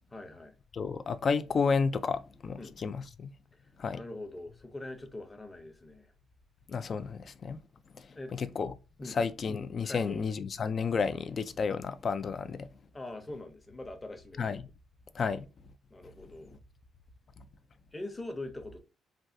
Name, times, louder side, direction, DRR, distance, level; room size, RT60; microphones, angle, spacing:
voice 1, 0.1-0.5 2.6-2.8 3.5-6.1 8.1-8.3 9.0-9.2 9.8-10.2 12.9-14.5 15.9-16.6 17.9-18.8, left 2 dB, 20° left, 0.7 m, -43 dB
voice 2, 0.7-3.3 3.8-4.0 6.7-7.6 8.3-8.7 9.1-12.7 14.4-14.6 15.2-15.5, left 5 dB, 45° left, 0.3 m, -31 dB
3.3 x 2.4 x 2.6 m
cardioid pair, 90°, 0 cm